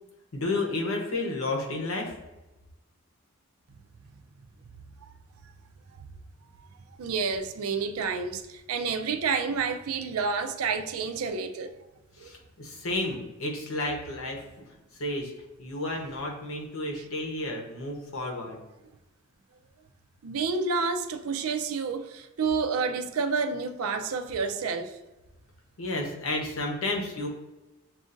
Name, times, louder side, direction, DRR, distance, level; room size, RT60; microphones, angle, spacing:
voice 1, 0.3-2.1 12.2-14.4 15.0-15.3 15.6-18.6 25.8-27.3, left 2 dB, 75° left, 1.0 m, -31 dB
voice 2, 7.0-11.7 12.2-12.3 17.0-17.1 20.2-25.0, right 5 dB, 80° right, 0.4 m, -29 dB
7.0 x 2.4 x 2.6 m
head